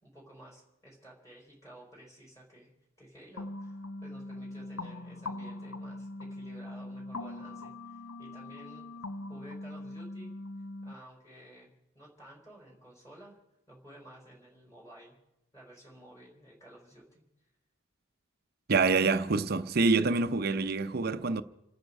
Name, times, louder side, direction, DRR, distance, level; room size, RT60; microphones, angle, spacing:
voice 1, 0.0-2.7 3.0-8.9 9.3-10.3 10.8-11.7 11.9-13.4 13.7-15.2 15.5-17.2, right 1 dB, 15° left, 4.0 m, -53 dB
sound 1, 3.4-10.9, left 2 dB, 80° left, 0.8 m, -41 dB
voice 2, 18.7-21.4, right 4 dB, 50° right, 0.6 m, -26 dB
28.5 x 9.5 x 5.4 m
head